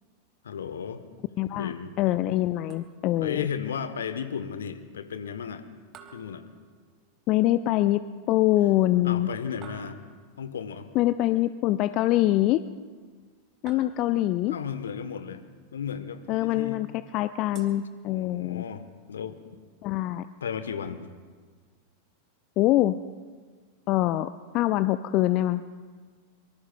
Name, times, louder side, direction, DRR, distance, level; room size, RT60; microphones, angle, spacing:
voice 1, 0.4-1.0 1.5-1.9 3.2-5.6 6.1-6.4 9.0-10.0 10.4-10.9 14.5-15.4 15.7-16.8 18.1-19.4 20.4-21.1, left 7 dB, 65° left, 12 dB, 1.0 m, -34 dB
voice 2, 1.4-1.7 2.0-3.5 7.3-8.0 8.3-9.3 10.9-12.6 13.6-14.5 16.3-16.9 17.1-18.6 19.8-20.3 22.6-23.0 23.9-25.6, left 15 dB, 40° left, 13 dB, 0.4 m, -24 dB
sound 1, 2.7-3.3 5.9-7.2 9.6-10.5 13.7-14.5 17.5-18.6, right 7 dB, 35° right, 1.6 m, -51 dB
24.5 x 23.5 x 2.3 m, 1.5 s
figure-of-eight pair, 90°, 0 cm